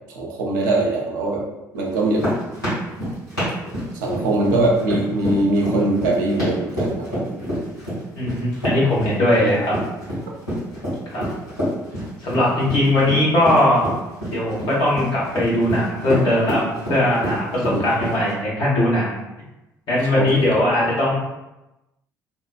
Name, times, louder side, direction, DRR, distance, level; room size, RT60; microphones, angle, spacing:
voice 1, 0.1-1.4 1.7-2.3 3.9-7.4 11.2-11.3 17.7-17.8 20.1-20.5, right 2 dB, 75° right, -1 dB, 0.5 m, -22 dB
sound 1, 1.9-18.3, equal, 90° left, 1.3 m, -27 dB
voice 2, 8.1-9.7 11.1-11.2 12.2-13.8 14.3-16.6 16.9-19.2 19.9-21.1, left 1 dB, 50° left, -6 dB, 1.2 m, -19 dB
2.8 x 2.1 x 2.3 m, 0.98 s
figure-of-eight pair, 50°, 10 cm